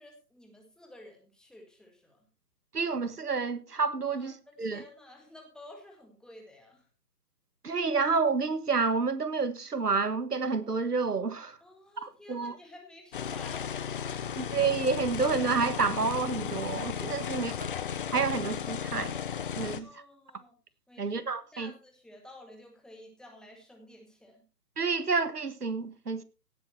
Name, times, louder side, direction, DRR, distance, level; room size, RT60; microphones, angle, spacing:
voice 1, 0.0-2.3 4.1-6.9 11.6-13.8 14.1-14.3 19.7-20.6 20.9-21.3 21.5-24.4, left 1 dB, ahead, 1.9 m, -52 dB
voice 2, 2.7-4.3 4.6-4.8 7.6-11.6 12.0-12.6 14.4-17.7 18.1-19.1 19.6-19.9 21.0-21.7 24.8-26.2, right 4 dB, 75° right, 1.6 m, -29 dB
sound 1, 13.1-19.8, left 8 dB, 35° left, 1.0 m, -35 dB
17.5 x 8.3 x 4.4 m
figure-of-eight pair, 140°, 47 cm